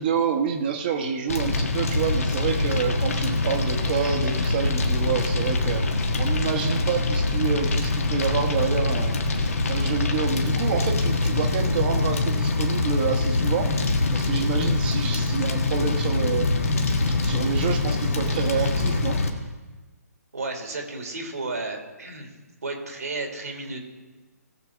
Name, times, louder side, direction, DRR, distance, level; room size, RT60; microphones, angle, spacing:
voice 1, 0.0-13.7 14.1-16.5 17.1-19.2, right 7 dB, 35° right, 3 dB, 1.3 m, -28 dB
Fire, 1.3-19.3, left 3 dB, 55° left, 1.5 m, -24 dB
voice 2, 20.3-22.3 22.6-23.8, right 3 dB, 65° right, 2 dB, 2.3 m, -33 dB
19.0 x 7.3 x 3.5 m, 1.2 s
figure-of-eight pair, 135°, 9 cm